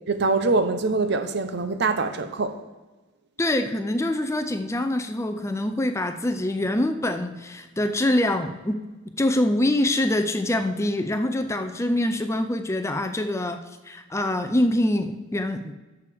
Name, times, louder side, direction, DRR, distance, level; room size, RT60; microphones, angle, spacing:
voice 1, 0.1-2.6, right 3 dB, 55° right, 0.7 m, -24 dB
voice 2, 3.4-8.8 9.2-13.6 13.9-15.7, left 1 dB, 15° left, 0.5 m, -24 dB
11.0 x 6.9 x 3.5 m
head